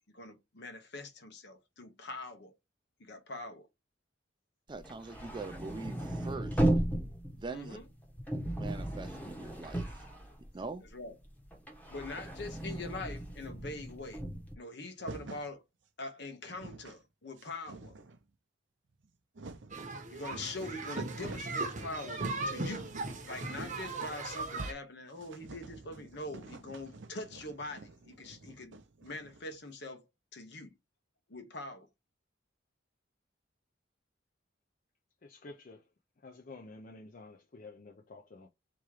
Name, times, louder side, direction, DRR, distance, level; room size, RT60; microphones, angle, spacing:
voice 1, 0.1-2.5 3.0-3.7 7.5-7.8 10.9-11.1 11.9-14.2 14.6-15.6 16.0-17.9 20.1-22.9 23.2-30.0 30.3-30.7 31.3-31.9, left 2 dB, 65° left, 1.0 m, -43 dB
voice 2, 4.7-6.7 7.4-7.8 8.6-10.1 10.5-10.8, right 3 dB, 25° right, 0.4 m, -43 dB
sound 1, 4.8-10.9 11.2-14.5, right 1 dB, 10° left, 1.0 m, -35 dB
sound 2, 15.0-15.5 16.2-16.3 16.4-17.0 17.4-18.2 18.9-19.9 20.6-20.7 21.0-21.6 22.0-24.0 24.2-24.3 24.6-24.7 25.1-29.6, right 3 dB, 70° right, 0.6 m, -49 dB
sound 3, 19.7-24.7, right 2 dB, 40° right, 0.8 m, -38 dB
voice 3, 35.2-35.8 36.2-38.5, left 3 dB, 45° left, 0.5 m, -50 dB
3.6 x 3.0 x 4.7 m
head